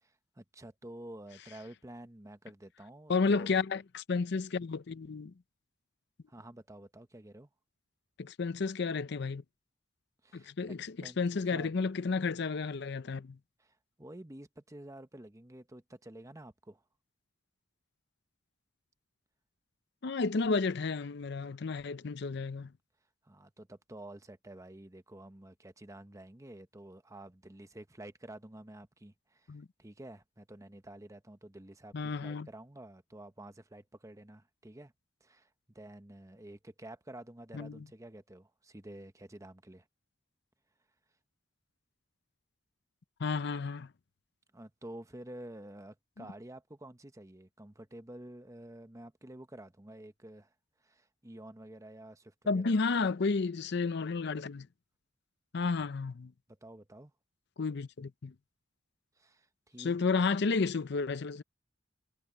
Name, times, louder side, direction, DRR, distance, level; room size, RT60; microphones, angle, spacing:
voice 1, 0.0-3.6 6.3-7.5 10.2-10.5 11.0-11.2 11.5-11.8 13.6-16.8 23.2-34.9 35.2-39.9 44.5-50.5 50.8-52.7 56.5-57.1 59.2-60.1, right 1 dB, 15° right, 1.0 m, -50 dB
voice 2, 3.1-5.3 8.2-9.4 10.3-13.4 20.0-22.7 29.5-29.7 31.9-32.5 37.5-37.9 43.2-43.9 46.2-46.3 52.5-54.7 55.5-56.3 57.6-58.3 59.8-61.4, left 4 dB, 60° left, 0.6 m, -32 dB
head